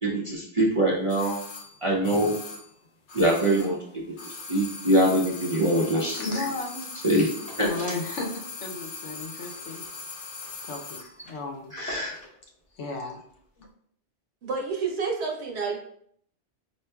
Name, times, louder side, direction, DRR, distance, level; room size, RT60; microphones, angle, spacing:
voice 1, 0.0-1.4 1.8-2.4 3.1-6.2 7.0-7.3 7.6-7.7 11.7-12.1, right 1 dB, 45° right, -3 dB, 0.4 m, -24 dB
sound 1, 1.1-3.8 4.1-11.1 11.4-11.5, left 4 dB, 55° left, 0.7 m, -40 dB
voice 2, 6.1-6.9 7.6-9.8 10.7-11.7 12.8-13.2 13.6-13.7, left 3 dB, 85° left, 1 dB, 1.0 m, -34 dB
sound 2, 6.9-8.2 8.5-8.6 8.9-9.1 9.5-10.6 10.9-11.0 11.2-12.4 13.3-13.4, equal, 10° left, 0.7 m, -43 dB
voice 3, 14.4-15.8, right 4 dB, 65° right, 0 dB, 1.0 m, -29 dB
4.5 x 2.9 x 2.2 m, 0.64 s
omnidirectional pair, 1.2 m